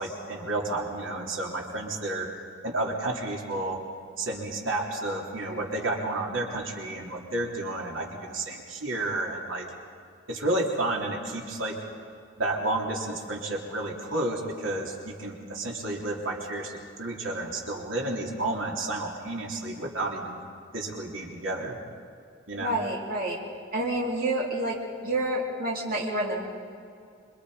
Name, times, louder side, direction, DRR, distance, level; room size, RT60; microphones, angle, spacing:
voice 1, 0.0-2.3 2.6-3.8 4.2-9.7 10.3-11.8 12.4-20.4 20.7-21.8 22.5-22.7, right 2 dB, 75° right, -1 dB, 3.2 m, -31 dB
voice 2, 22.6-23.4 23.7-24.8 25.0-26.4, right 1 dB, 45° right, -3 dB, 2.6 m, -28 dB
27.0 x 24.0 x 5.0 m, 2.2 s
head